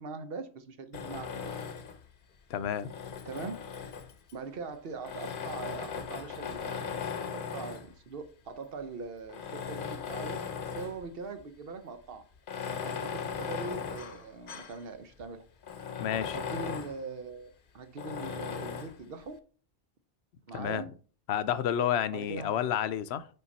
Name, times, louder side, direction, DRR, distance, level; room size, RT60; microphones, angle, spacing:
voice 1, 0.0-1.7 3.2-3.6 4.3-7.0 7.3-10.4 10.7-12.2 12.8-15.4 16.3-19.4 20.5-20.9 22.1-22.6, right 4 dB, 65° right, 9 dB, 1.0 m, -41 dB
Tools, 0.9-2.1 2.7-4.3 5.0-7.9 8.6-8.7 9.3-11.0 11.4-11.5 12.4-14.8 15.2-15.3 15.6-17.0 18.0-19.0, left 6 dB, 60° left, 0.8 m, -38 dB
voice 2, 2.5-2.9 16.0-16.4 20.5-20.8 21.3-23.3, left 9 dB, 85° left, 13 dB, 0.8 m, -30 dB
5.6 x 4.7 x 4.1 m, 0.40 s
omnidirectional pair, 1.1 m